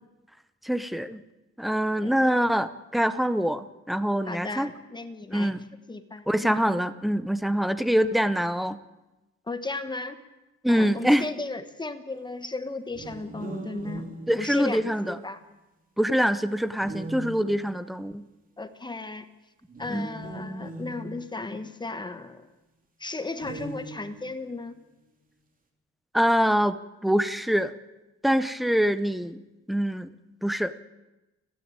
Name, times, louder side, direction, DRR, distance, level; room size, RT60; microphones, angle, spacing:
voice 1, 0.6-1.2 1.6-4.7 5.3-5.7 6.3-8.8 10.6-11.2 14.3-15.2 16.0-18.2 19.9-20.1 26.1-27.7 28.2-29.4 29.7-30.1 30.4-30.7, equal, ahead, 13 dB, 0.8 m, -24 dB
voice 2, 4.3-5.5 5.9-6.5 9.5-10.2 10.7-14.1 14.4-15.4 18.6-19.3 19.8-22.4 23.0-24.7, left 3 dB, 15° left, 10 dB, 1.2 m, -35 dB
sound 1, 12.9-15.2 16.8-18.0 19.7-22.0 23.4-24.4, right 1 dB, 30° right, 2.9 m, -40 dB
29.5 x 11.0 x 9.0 m, 1.0 s
cardioid pair, 155°, 30 cm